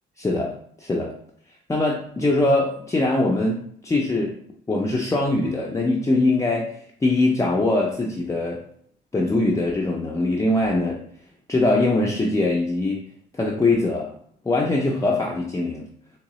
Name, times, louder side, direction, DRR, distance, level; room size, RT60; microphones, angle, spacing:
voice 1, 0.2-0.5 0.8-1.1 1.7-4.3 4.7-6.7 7.0-8.6 9.1-11.0 11.5-13.1 13.3-14.1 14.4-15.9, left 2 dB, 15° left, -2 dB, 0.5 m, -22 dB
3.8 x 2.9 x 3.0 m, 0.63 s
cardioid pair, 90°, 20 cm